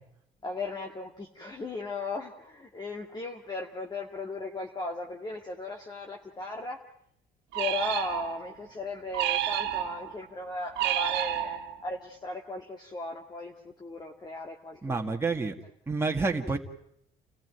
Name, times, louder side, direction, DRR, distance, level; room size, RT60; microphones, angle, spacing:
voice 1, 0.4-6.8 7.5-15.2, left 3 dB, 25° left, 1 dB, 2.2 m, -37 dB
sound 1, 7.5-8.6 9.1-10.2 10.8-11.9, right 12 dB, 90° right, 1.7 m, -30 dB
voice 2, 14.8-15.5 15.9-16.6, right 3 dB, 15° right, 2 dB, 2.0 m, -28 dB
29.5 x 15.0 x 9.4 m, 0.73 s
cardioid pair, 110°, 17 cm